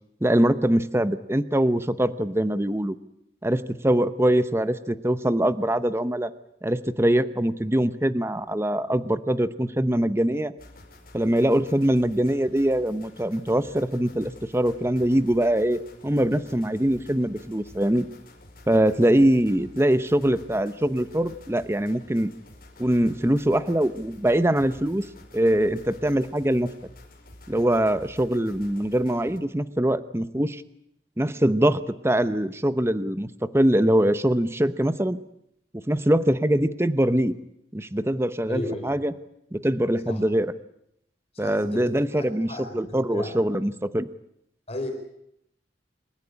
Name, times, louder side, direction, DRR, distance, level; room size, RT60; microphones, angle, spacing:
voice 1, 0.2-2.9 3.4-6.3 6.6-10.5 11.1-18.1 18.7-22.3 22.8-25.0 25.3-26.7 27.5-30.6 31.2-33.3 33.5-35.2 35.7-37.3 37.7-39.1 39.5-40.5 41.4-44.1, right 1 dB, 15° right, 13 dB, 0.8 m, -23 dB
sound 1, 10.6-29.4, left 1 dB, 55° left, 5.5 m, -50 dB
voice 2, 38.5-38.9 40.1-40.2 41.3-43.3 44.7-44.9, left 1 dB, 35° left, 5 dB, 4.7 m, -34 dB
27.5 x 15.0 x 10.0 m, 0.78 s
head